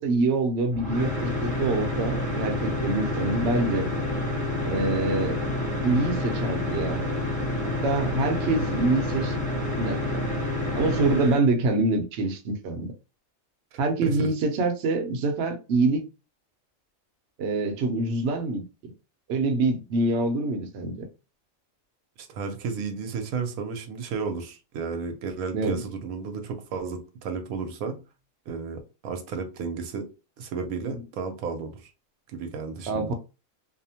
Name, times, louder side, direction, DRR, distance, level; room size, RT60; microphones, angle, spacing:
voice 1, 0.0-3.9 4.6-5.4 5.8-7.1 7.8-9.3 9.8-10.2 10.7-12.9 13.8-16.0 17.4-18.6 19.3-21.1 25.5-25.8 32.9-33.1, right 3 dB, 60° right, 0.8 m, -25 dB
sound 1, 0.7-11.4, left 1 dB, 5° left, 0.8 m, -28 dB
voice 2, 22.2-28.0 28.5-30.1 30.4-31.9 32.3-33.1, right 5 dB, 90° right, 1.0 m, -33 dB
2.7 x 2.0 x 2.8 m
omnidirectional pair, 1.4 m